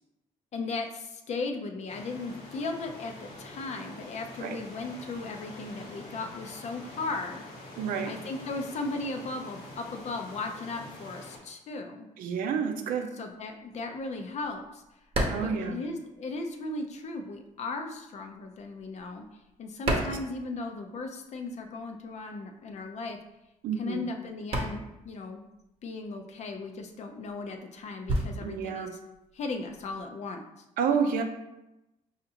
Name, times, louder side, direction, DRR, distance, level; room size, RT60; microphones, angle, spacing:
voice 1, 0.5-7.4 8.1-12.1 13.2-14.8 15.4-19.2 19.6-23.2 23.8-25.5 25.8-28.9 29.3-30.4, left 3 dB, 55° left, 5 dB, 0.5 m, -36 dB
sound 1, 1.9-11.4, left 2 dB, 75° left, 1.2 m, -46 dB
voice 2, 7.8-8.1 12.2-13.1 15.3-15.8 19.9-20.1 23.6-24.0 28.4-28.9 30.8-31.2, right 6 dB, 90° right, 5 dB, 0.5 m, -29 dB
sound 2, 13.4-16.7 16.9-21.1 21.3-30.1, right 1 dB, 40° right, 0.8 m, -35 dB
5.0 x 2.4 x 2.8 m, 0.93 s
cardioid pair, 110°, 14 cm